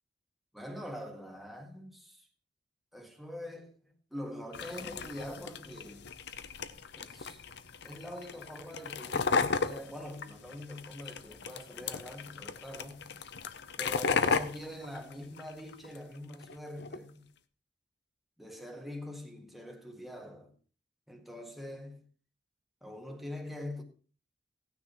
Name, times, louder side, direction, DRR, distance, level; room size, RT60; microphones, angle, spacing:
voice 1, 0.5-2.3 2.9-6.1 7.0-7.4 7.8-13.1 13.8-17.3 18.4-20.5 21.1-22.0 22.8-23.8, left 1 dB, ahead, 1.7 m, -44 dB
sound 1, 4.5-16.0 16.3-17.0, left 5 dB, 65° left, 0.7 m, -35 dB
17.0 x 9.5 x 3.1 m
head